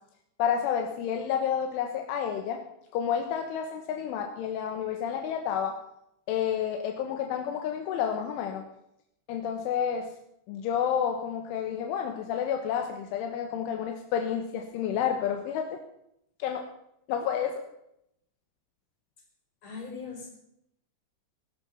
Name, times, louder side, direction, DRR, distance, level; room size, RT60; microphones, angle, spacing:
voice 1, 0.4-2.6 2.9-5.8 6.3-8.6 9.3-10.1 10.5-15.8 16.4-16.7 17.1-17.6, left 8 dB, 80° left, 4 dB, 3.6 m, -30 dB
voice 2, 19.6-20.3, left 5 dB, 35° left, 1 dB, 6.0 m, -39 dB
19.5 x 12.5 x 5.7 m, 0.79 s
omnidirectional pair, 5.6 m